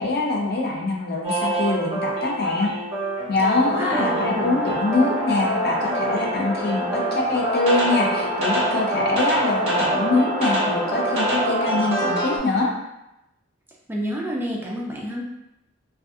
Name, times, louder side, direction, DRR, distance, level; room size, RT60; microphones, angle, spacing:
voice 1, 0.0-2.7 3.3-12.7, left 2 dB, 55° left, -1 dB, 0.5 m, -24 dB
sound 1, 1.2-12.4, right 2 dB, 30° right, 0.8 m, -26 dB
sound 2, 3.6-12.4, left 1 dB, 25° left, 0.8 m, -29 dB
voice 2, 3.7-4.6 13.9-15.2, equal, 10° right, -3 dB, 0.3 m, -29 dB
2.6 x 2.3 x 2.3 m, 0.88 s
head